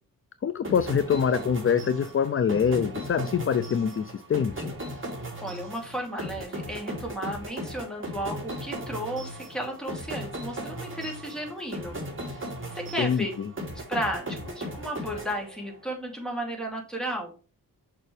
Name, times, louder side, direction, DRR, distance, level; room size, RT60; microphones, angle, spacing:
voice 1, 0.4-4.7 13.0-13.5, left 7 dB, 40° left, 12 dB, 0.5 m, -25 dB
sound 1, 0.6-15.9, right 1 dB, 35° right, 2.9 m, -37 dB
voice 2, 5.4-12.0 12.7-13.3 13.7-17.3, equal, ahead, 1 dB, 2.7 m, -34 dB
6.7 x 6.0 x 3.3 m, 0.35 s
wide cardioid pair, 115°, 35 cm